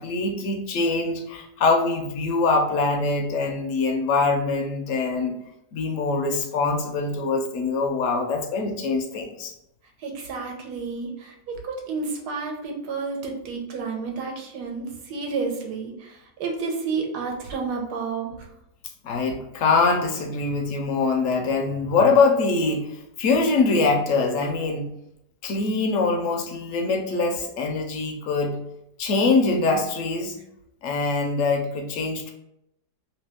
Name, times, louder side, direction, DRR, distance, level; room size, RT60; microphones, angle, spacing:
voice 1, 0.0-5.4 5.7-9.5 19.0-24.9 25.4-28.6 29.0-30.4 30.8-32.3, left 3 dB, 70° left, 4 dB, 0.7 m, -23 dB
voice 2, 10.0-18.5, right 4 dB, 75° right, 1 dB, 1.3 m, -31 dB
3.0 x 2.9 x 3.4 m, 0.79 s
omnidirectional pair, 1.8 m